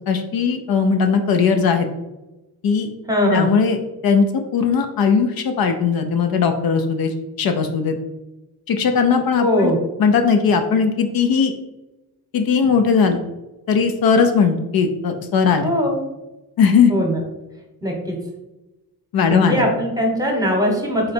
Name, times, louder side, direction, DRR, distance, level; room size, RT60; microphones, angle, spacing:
voice 1, 0.1-1.9 2.6-2.9 3.3-8.0 8.7-9.7 10.0-11.5 12.3-13.2 13.7-15.7 16.6-16.9 19.1-19.6, left 5 dB, 70° left, 6 dB, 0.6 m, -18 dB
voice 2, 3.1-3.5 9.4-9.8 15.6-16.0 16.9-17.2 17.8-18.2 19.3-21.1, equal, 10° right, 0 dB, 1.0 m, -20 dB
3.9 x 3.1 x 4.3 m, 1.0 s
cardioid pair, 120°, 38 cm